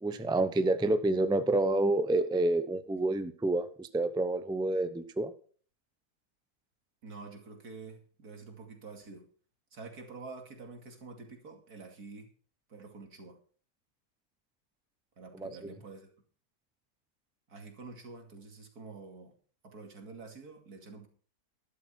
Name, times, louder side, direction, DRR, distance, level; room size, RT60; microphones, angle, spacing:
voice 1, 0.0-5.3 15.4-15.7, right 2 dB, 5° right, 11 dB, 0.5 m, -28 dB
voice 2, 7.0-9.3 9.7-12.3 12.7-13.4 15.2-16.1 17.5-19.3 19.6-21.1, right 4 dB, 80° right, 4 dB, 3.0 m, -48 dB
12.5 x 11.5 x 4.4 m, 0.43 s
omnidirectional pair, 1.6 m